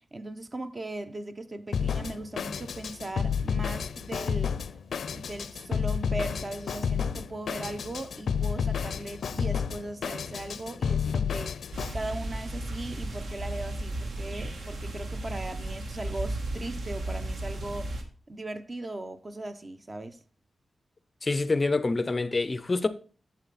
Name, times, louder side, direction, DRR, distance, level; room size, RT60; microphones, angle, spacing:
voice 1, 0.0-4.6 5.1-18.0 18.3-20.2, right 2 dB, 25° right, 0.6 m, -38 dB
Drum kit, 1.7-11.9, left 7 dB, 85° left, 0.5 m, -31 dB
sound 1, 11.7-18.0, right 1 dB, 70° right, 1.6 m, -35 dB
voice 2, 21.2-22.9, left 3 dB, 25° left, 0.5 m, -26 dB
8.8 x 7.5 x 4.1 m
wide cardioid pair, 175°, 0 cm